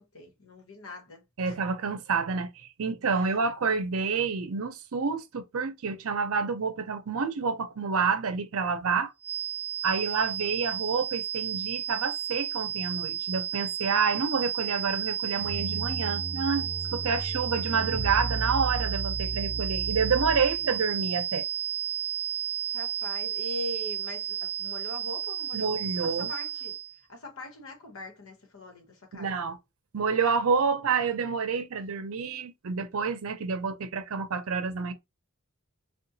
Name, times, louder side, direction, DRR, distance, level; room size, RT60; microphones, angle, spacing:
voice 1, 0.1-1.6 3.1-3.4 22.7-26.8 27.1-29.3, left 1 dB, 65° left, 1.2 m, -42 dB
voice 2, 1.4-9.1 9.8-21.4 25.5-26.3 29.1-29.6 29.9-34.9, right 5 dB, 70° right, 0.6 m, -28 dB
sound 1, 9.2-27.0, right 10 dB, 30° left, 0.9 m, -33 dB
sound 2, 15.4-20.8, right 2 dB, 25° right, 0.6 m, -34 dB
3.7 x 2.3 x 2.6 m
head